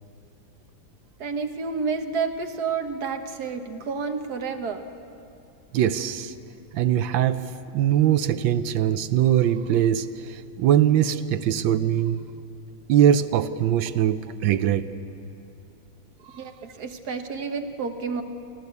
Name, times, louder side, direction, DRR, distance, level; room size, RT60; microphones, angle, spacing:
voice 1, 1.2-4.8 16.3-18.2, right 5 dB, 60° right, 6 dB, 1.6 m, -30 dB
voice 2, 5.7-6.3 6.7-12.2 12.9-14.9 16.2-16.5, right 10 dB, 80° right, 11 dB, 1.4 m, -22 dB
24.0 x 15.0 x 8.3 m, 2.7 s
omnidirectional pair, 2.1 m